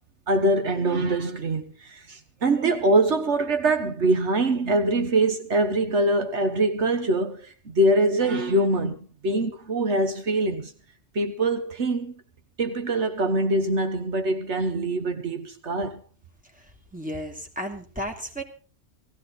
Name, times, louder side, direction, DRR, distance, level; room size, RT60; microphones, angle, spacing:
voice 1, 0.3-10.7 11.1-12.1 12.6-16.0, right 2 dB, 75° right, 1.6 m, -24 dB
voice 2, 16.9-18.4, equal, 5° right, 2.8 m, -33 dB
18.5 x 15.0 x 4.0 m
omnidirectional pair, 1.2 m